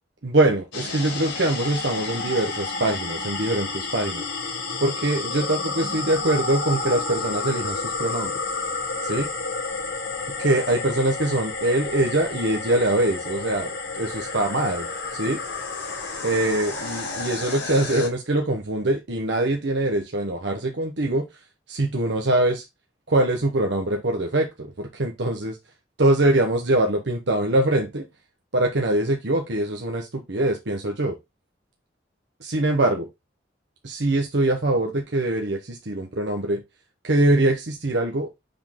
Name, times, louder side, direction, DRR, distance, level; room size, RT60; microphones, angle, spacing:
voice 1, 0.2-4.2 4.8-8.3 9.0-9.3 10.2-15.4 16.2-21.3 21.7-22.6 23.1-25.5 26.0-28.1 28.5-31.1 32.4-33.1 33.8-36.6 37.0-38.3, right 1 dB, 70° right, 1.0 m, -23 dB
sound 1, 0.7-18.1, left 3 dB, 90° left, 3.2 m, -31 dB
7.1 x 3.8 x 3.7 m
head